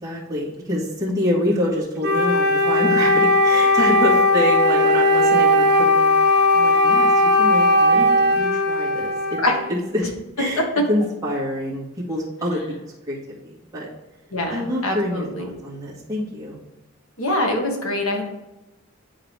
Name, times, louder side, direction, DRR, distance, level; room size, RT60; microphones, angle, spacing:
voice 1, 0.0-9.4 9.9-10.1 10.4-10.6 10.9-13.2 13.4-13.9 14.5-16.6, equal, 15° right, -8 dB, 1.7 m, -26 dB
Wind instrument woodwind instrument, 2.0-9.7, left 1 dB, 50° right, 0.6 m, -17 dB
voice 2, 14.3-15.5 17.2-18.2, left 1 dB, 85° left, 2 dB, 1.5 m, -23 dB
9.6 x 3.9 x 3.3 m, 1.0 s
head